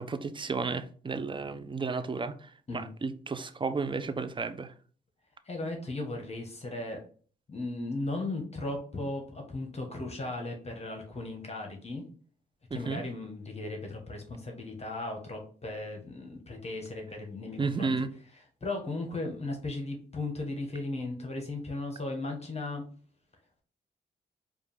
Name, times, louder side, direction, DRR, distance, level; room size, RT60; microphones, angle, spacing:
voice 1, 0.0-4.7 12.7-13.0 17.6-18.1, right 4 dB, 25° right, 0.5 m, -33 dB
voice 2, 5.5-7.0 7.5-12.0 12.7-17.9 18.6-22.8, left 2 dB, 35° left, 1.2 m, -36 dB
4.7 x 2.5 x 3.4 m
supercardioid pair, 55°, 18 cm